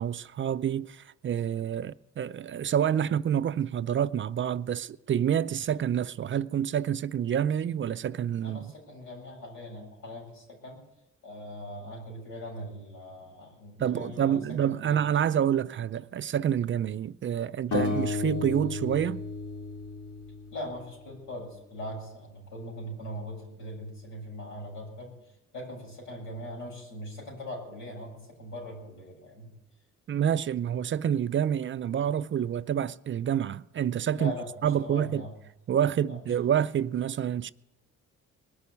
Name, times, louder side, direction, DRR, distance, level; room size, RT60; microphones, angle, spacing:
voice 1, 0.0-8.7 13.8-19.2 30.1-34.3 34.6-35.2 35.7-37.5, right 9 dB, 40° right, 0.4 m, -28 dB
voice 2, 8.4-10.8 11.2-15.0 20.5-29.5 34.1-35.4 36.1-36.2, equal, 85° left, 7.4 m, -41 dB
sound 1, 17.7-20.9, left 3 dB, 70° left, 4.2 m, -33 dB
20.5 x 6.9 x 9.6 m
cardioid pair, 90°, 30 cm